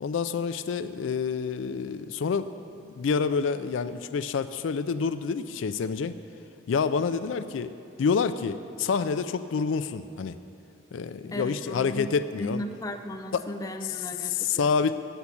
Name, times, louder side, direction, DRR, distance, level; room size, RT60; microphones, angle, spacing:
voice 1, 0.0-2.5 2.8-6.1 6.7-7.7 8.0-10.4 10.9-12.6 13.3-13.5 13.8-15.0, left 5 dB, 85° left, 11 dB, 0.4 m, -28 dB
voice 2, 11.3-12.1 12.4-14.3 14.6-14.7, left 1 dB, 20° left, 5 dB, 0.5 m, -35 dB
7.9 x 7.1 x 8.3 m, 2.6 s
head